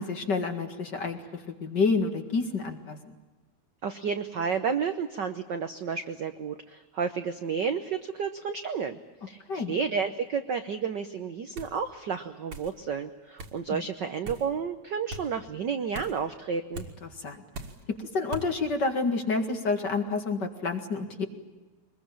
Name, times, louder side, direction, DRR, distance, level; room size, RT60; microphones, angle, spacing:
voice 1, 0.0-3.0 9.5-9.8 13.7-13.8 17.0-17.4 18.1-21.3, left 4 dB, 40° left, 6 dB, 2.3 m, -29 dB
voice 2, 3.8-9.0 9.3-16.9, right 6 dB, 65° right, 9 dB, 1.0 m, -31 dB
sound 1, 11.6-11.8 12.5-12.7 13.4-13.6 14.2-14.5 15.1-15.3 15.9-16.2 16.7-16.9 17.5-17.8 18.3-18.5, right 2 dB, 50° right, 2.8 m, -39 dB
23.5 x 21.5 x 8.9 m, 1.2 s
omnidirectional pair, 3.3 m